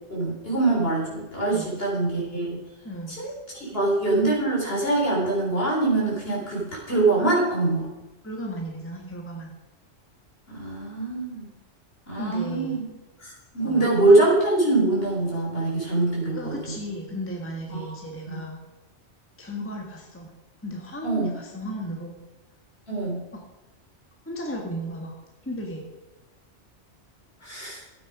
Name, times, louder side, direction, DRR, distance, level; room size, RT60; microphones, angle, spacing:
voice 1, 0.1-2.6 3.1-7.9 10.5-11.5 12.1-12.8 13.2-16.6 17.7-18.0 18.2-18.4 21.0-21.3 22.9-23.2 27.4-27.8, right 2 dB, 55° left, -3 dB, 4.3 m, -24 dB
voice 2, 2.8-3.4 8.2-9.5 12.1-12.8 13.6-13.9 16.3-18.6 19.4-20.3 20.6-22.1 24.2-25.1 25.4-25.8, equal, 10° left, 0 dB, 1.6 m, -34 dB
13.5 x 9.1 x 5.0 m, 1.1 s
omnidirectional pair, 1.2 m